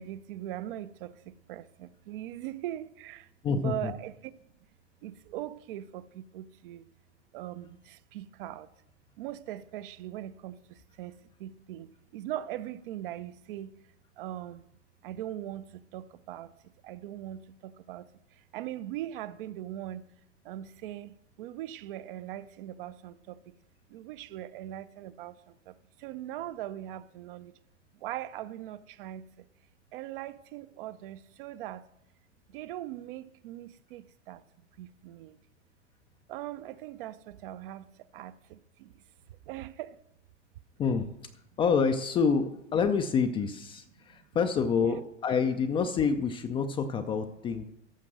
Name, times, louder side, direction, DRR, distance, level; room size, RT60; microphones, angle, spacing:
voice 1, 0.0-4.3 5.0-6.9 7.3-8.7 9.2-13.8 14.2-14.7 15.0-16.5 16.8-20.1 20.4-23.6 23.9-27.6 28.0-29.5 29.9-31.9 32.5-34.4 34.8-35.4 36.3-39.0 39.5-40.0 44.7-45.0, right 13 dB, 45° right, 0.5 m, -41 dB
voice 2, 3.4-3.9 40.8-41.1 41.6-47.6, left 6 dB, 15° left, 0.4 m, -27 dB
14.0 x 5.1 x 6.2 m
hypercardioid pair, 100°, 37 cm